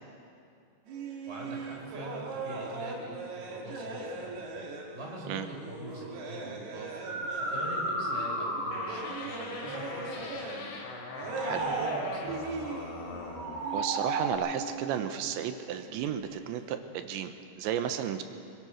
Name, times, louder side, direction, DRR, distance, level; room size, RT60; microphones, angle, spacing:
sound 1, 0.9-10.8 11.1-12.0 12.2-15.5 15.8-16.0, right 3 dB, 65° right, 4.1 m, -40 dB
voice 1, 1.3-4.5 4.9-7.0 7.4-10.7 11.2-12.4, right 1 dB, 15° right, -2 dB, 4.2 m, -43 dB
sound 2, 5.9-6.0 6.8-9.2 11.1-12.2 13.2-14.3, right 2 dB, 45° right, 5.0 m, -33 dB
sound 3, 8.7-13.7, left 3 dB, 80° left, 4.6 m, -42 dB
voice 2, 13.7-18.2, right 9 dB, 85° right, 8 dB, 3.3 m, -33 dB
22.5 x 22.0 x 6.3 m, 2.4 s
omnidirectional pair, 5.2 m